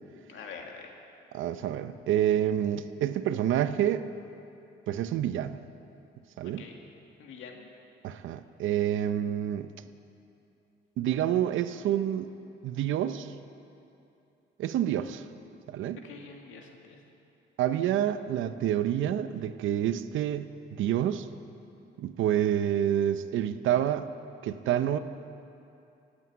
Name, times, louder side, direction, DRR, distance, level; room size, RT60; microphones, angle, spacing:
voice 1, 0.3-1.0 6.6-6.8 7.2-7.7 16.0-17.0, left 5 dB, 85° left, 2 dB, 1.9 m, -45 dB
voice 2, 1.3-4.0 4.9-5.6 6.4-6.6 8.0-9.7 11.0-12.3 12.6-13.3 14.6-15.2 15.7-16.0 17.6-21.3 22.0-24.1 24.4-25.0, right 11 dB, 80° right, 12 dB, 0.7 m, -28 dB
17.0 x 8.4 x 8.4 m, 2.7 s
cardioid pair, 90°, 20 cm